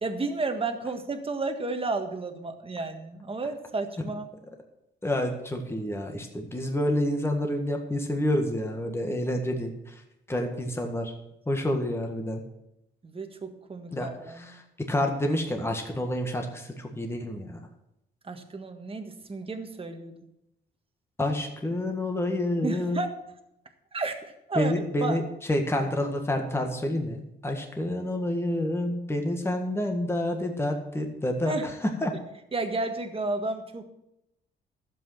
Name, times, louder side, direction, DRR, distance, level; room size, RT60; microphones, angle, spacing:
voice 1, 0.0-4.3 13.0-14.6 18.2-20.2 22.6-23.2 23.9-24.2 24.5-25.2 31.5-31.7 32.5-33.9, right 3 dB, 30° right, 6 dB, 1.6 m, -32 dB
voice 2, 5.0-10.0 10.3-11.1 11.5-12.4 13.9-17.6 21.2-23.0 24.5-25.2 25.5-32.1, left 1 dB, 10° left, 3 dB, 1.7 m, -28 dB
11.5 x 7.9 x 5.8 m, 0.85 s
cardioid pair, 90°, 20 cm